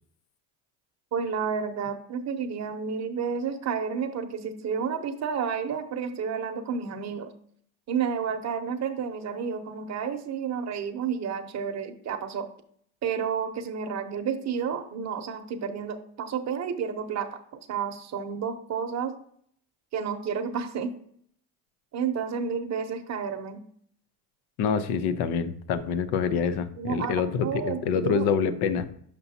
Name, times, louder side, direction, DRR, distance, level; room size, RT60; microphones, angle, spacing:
voice 1, 1.1-7.3 7.9-12.5 13.0-17.4 17.7-19.1 19.9-20.9 21.9-23.6 26.8-28.3, right 6 dB, 35° right, 6 dB, 0.9 m, -31 dB
voice 2, 24.6-28.9, left 6 dB, 55° left, 13 dB, 0.7 m, -26 dB
6.8 x 5.8 x 2.8 m, 0.63 s
supercardioid pair, 110°, 47 cm